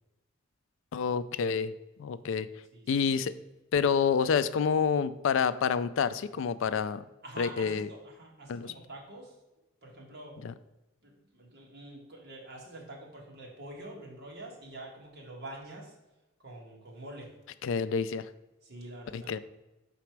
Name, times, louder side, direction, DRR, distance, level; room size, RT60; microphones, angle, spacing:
voice 1, 0.9-1.7 2.0-2.5 2.9-3.3 3.7-7.0 7.4-7.9 8.5-8.7 10.4-10.5 17.6-18.3 19.1-19.4, left 6 dB, 65° left, 14 dB, 0.3 m, -28 dB
voice 2, 7.2-9.3 9.8-10.4 11.0-16.0 16.4-17.3 18.6-19.4, right 1 dB, 50° right, -2 dB, 1.7 m, -46 dB
6.0 x 4.1 x 4.6 m, 1.0 s
head